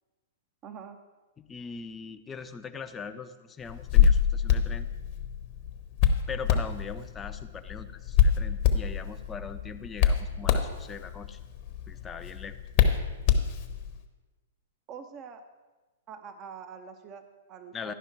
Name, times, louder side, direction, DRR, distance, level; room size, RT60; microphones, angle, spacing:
voice 1, 0.6-1.0 14.9-15.4 16.1-17.9, right 6 dB, 35° right, 8 dB, 0.6 m, -44 dB
voice 2, 1.4-4.9 6.3-11.4 11.9-12.5 17.7-17.9, left 5 dB, 15° left, 8 dB, 0.5 m, -41 dB
Hands, 3.7-13.9, left 8 dB, 45° left, 0.9 m, -26 dB
11.0 x 5.5 x 4.5 m, 1.2 s
hypercardioid pair, 120°, 0 cm